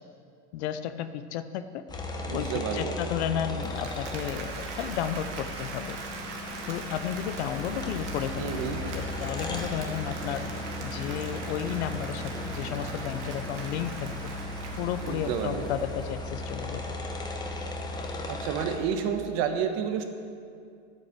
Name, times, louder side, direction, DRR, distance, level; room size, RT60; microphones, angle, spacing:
voice 1, 0.5-1.8 2.3-6.0 6.6-8.5 8.9-10.5 10.8-14.1 14.8-17.0, left 10 dB, 65° left, 11 dB, 0.8 m, -33 dB
sound 1, 1.9-18.8, left 1 dB, 10° left, 1.0 m, -36 dB
voice 2, 2.3-3.0 8.4-8.8 15.1-15.7 18.3-20.0, right 7 dB, 45° right, 6 dB, 1.3 m, -30 dB
Applause, 3.5-16.5, right 5 dB, 85° right, 2.1 m, -42 dB
11.0 x 9.2 x 7.4 m, 2.3 s
supercardioid pair, 145°, 35 cm